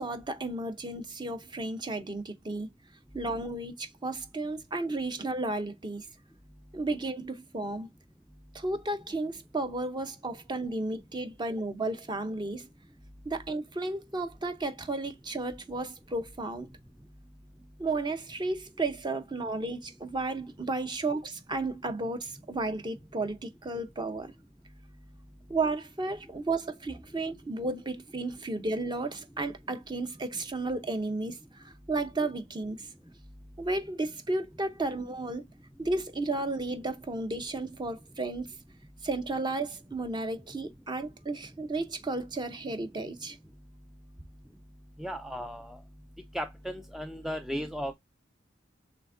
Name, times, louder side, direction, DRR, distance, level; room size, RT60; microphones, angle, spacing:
voice 1, 0.0-2.7 3.1-6.1 6.7-7.9 8.5-12.7 13.2-16.7 17.8-24.3 25.5-32.9 33.6-35.4 35.8-38.5 39.0-43.4, right 2 dB, 25° right, 0.7 m, -33 dB
voice 2, 45.0-45.8 46.3-47.9, equal, ahead, 0.3 m, -35 dB
5.6 x 3.5 x 2.6 m
head